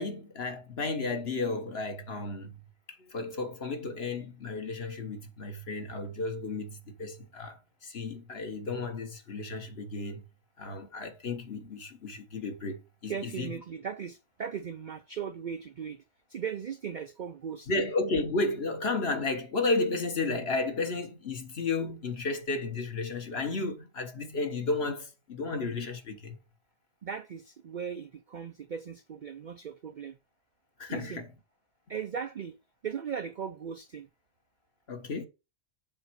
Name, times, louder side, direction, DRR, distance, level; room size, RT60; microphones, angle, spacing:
voice 1, 0.0-2.5 3.0-10.2 10.6-13.5 17.7-26.4 30.8-31.3 34.9-35.3, left 3 dB, 55° left, 1.6 m, -33 dB
voice 2, 13.1-16.0 16.3-17.8 27.0-30.2 30.9-31.2 31.9-32.6 32.8-34.1, right 7 dB, 60° right, 0.5 m, -38 dB
7.5 x 5.4 x 4.7 m
omnidirectional pair, 1.3 m